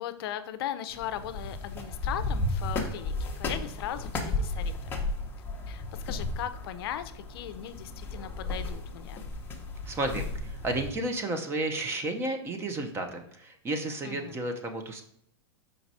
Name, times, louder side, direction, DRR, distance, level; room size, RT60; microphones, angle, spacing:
voice 1, 0.0-5.1 5.7-9.3 14.0-14.4, left 11 dB, 60° left, 10 dB, 0.5 m, -38 dB
sound 1, 0.9-10.9, left 2 dB, 15° left, 0.9 m, -34 dB
voice 2, 9.8-15.0, right 2 dB, 15° right, 6 dB, 0.6 m, -32 dB
5.1 x 4.6 x 4.1 m, 0.70 s
supercardioid pair, 155°, 15 cm